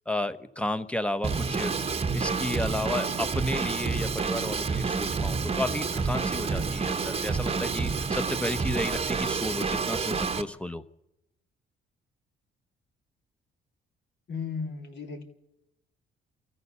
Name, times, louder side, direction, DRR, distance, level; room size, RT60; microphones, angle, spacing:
voice 1, 0.1-10.8, left 1 dB, 5° left, 12 dB, 1.1 m, -33 dB
Drum kit / Drum, 1.2-10.4, right 5 dB, 30° right, 1.1 m, -29 dB
voice 2, 14.3-15.2, left 5 dB, 60° left, 3 dB, 3.2 m, -35 dB
27.5 x 14.0 x 7.0 m, 0.89 s
cardioid pair, 90°, 20 cm